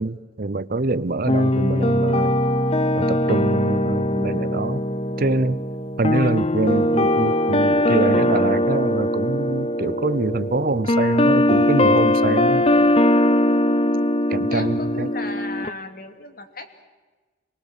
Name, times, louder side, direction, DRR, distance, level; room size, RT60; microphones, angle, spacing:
voice 1, 0.0-2.4 2.9-4.8 5.2-5.6 6.0-12.7 14.3-15.1, right 2 dB, 50° right, 0.7 m, -25 dB
sound 1, 1.3-15.7, left 1 dB, 30° left, 0.8 m, -20 dB
voice 2, 14.5-16.8, left 3 dB, 50° left, 2.6 m, -36 dB
27.5 x 23.0 x 7.4 m
head